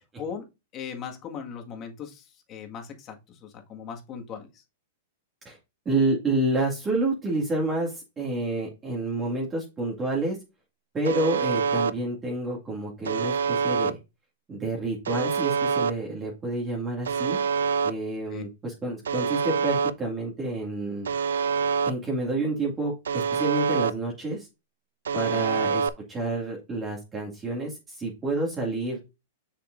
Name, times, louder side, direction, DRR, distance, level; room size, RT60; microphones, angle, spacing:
voice 1, 0.7-4.6 18.3-18.4 25.2-25.6, left 7 dB, 30° left, 3 dB, 1.8 m, -39 dB
voice 2, 5.9-10.4 10.9-14.0 14.5-17.4 17.8-21.1 21.8-24.5 25.1-29.0, right 2 dB, 20° right, -2 dB, 2.2 m, -29 dB
Alarm, 11.1-11.9 13.1-13.9 15.1-15.9 17.1-17.9 19.1-19.9 21.1-21.9 23.1-23.9 25.1-25.9, right 6 dB, 90° right, 0.4 m, -25 dB
6.8 x 6.5 x 2.6 m, 0.25 s
hypercardioid pair, 135°, 0 cm